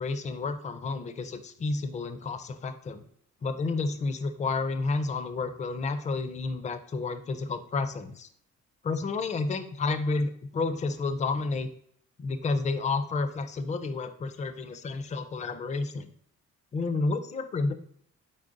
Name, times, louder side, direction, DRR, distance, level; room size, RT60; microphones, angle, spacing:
voice 1, 0.0-3.0 3.4-8.3 8.8-11.7 12.2-16.1 16.7-17.7, left 3 dB, 25° left, 10 dB, 0.4 m, -30 dB
4.1 x 3.8 x 2.5 m, 0.64 s
cardioid pair, 90°, 30 cm